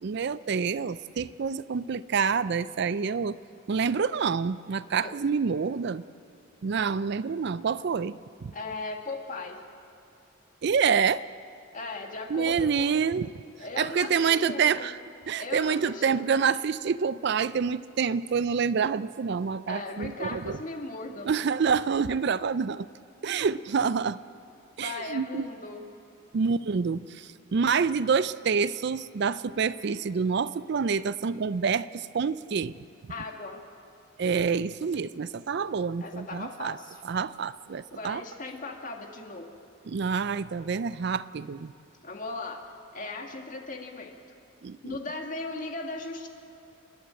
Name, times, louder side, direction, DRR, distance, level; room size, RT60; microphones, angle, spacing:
voice 1, 0.0-3.4 3.7-6.0 6.6-8.5 10.6-11.2 12.3-13.3 13.8-15.0 15.3-20.6 21.2-22.9 23.2-24.2 24.8-25.5 26.3-32.8 33.0-33.1 34.2-36.8 37.0-38.2 39.9-41.7 44.6-45.0, right 6 dB, 55° right, 16 dB, 0.4 m, -27 dB
voice 2, 8.5-9.6 11.7-13.0 13.6-14.9 15.4-16.2 19.7-21.4 24.8-25.9 33.1-33.6 36.0-37.0 37.9-39.5 42.0-42.6 42.9-44.1 44.8-46.3, left 3 dB, 40° left, 3 dB, 2.0 m, -37 dB
30.0 x 11.0 x 8.7 m, 2.7 s
head